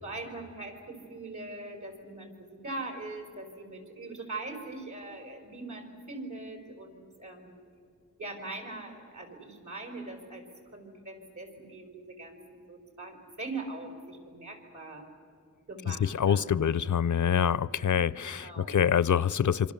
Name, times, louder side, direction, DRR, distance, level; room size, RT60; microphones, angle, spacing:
voice 1, 0.0-7.6 8.2-10.4 10.7-15.1 15.7-16.6 17.3-18.0 18.2-18.8, right 2 dB, 75° right, 3 dB, 5.1 m, -42 dB
voice 2, 15.9-19.7, left 8 dB, 85° left, 20 dB, 0.5 m, -26 dB
26.5 x 25.5 x 7.1 m, 2.5 s
wide cardioid pair, 70°, 29 cm